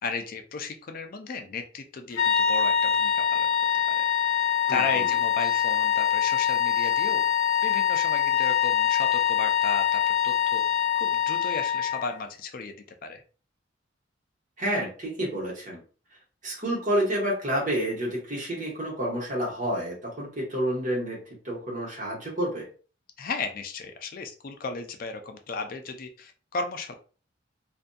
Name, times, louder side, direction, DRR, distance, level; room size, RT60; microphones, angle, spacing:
voice 1, 0.0-3.5 3.9-4.0 4.7-7.2 7.6-10.6 11.0-12.7 13.0-13.2 23.2-26.9, left 4 dB, 50° left, 5 dB, 0.4 m, -35 dB
sound 1, 2.1-12.1, left 9 dB, 80° left, 0.7 m, -24 dB
voice 2, 4.7-5.1 14.6-15.8 16.4-22.7, right 1 dB, 40° right, -3 dB, 1.1 m, -29 dB
2.6 x 2.5 x 2.3 m, 0.38 s
head